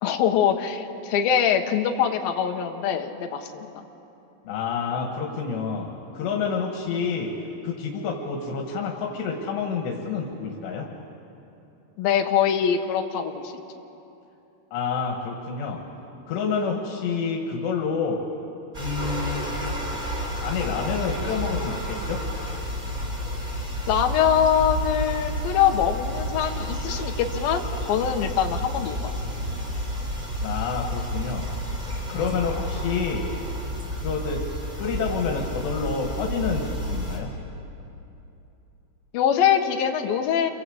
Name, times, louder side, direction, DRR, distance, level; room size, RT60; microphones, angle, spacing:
voice 1, 0.0-3.9 12.0-13.5 23.9-29.0 32.1-32.2 39.1-40.5, left 8 dB, 70° left, 4 dB, 3.0 m, -23 dB
voice 2, 4.5-7.3 7.6-10.9 14.7-15.8 16.3-18.2 18.8-19.4 20.4-22.2 30.4-31.4 32.1-33.3 34.0-34.4 34.8-37.3, left 5 dB, 85° left, 0 dB, 4.0 m, -28 dB
sound 1, 18.7-37.2, equal, 10° right, 4.1 m, -30 dB
29.0 x 23.5 x 8.1 m, 2.9 s
omnidirectional pair, 4.8 m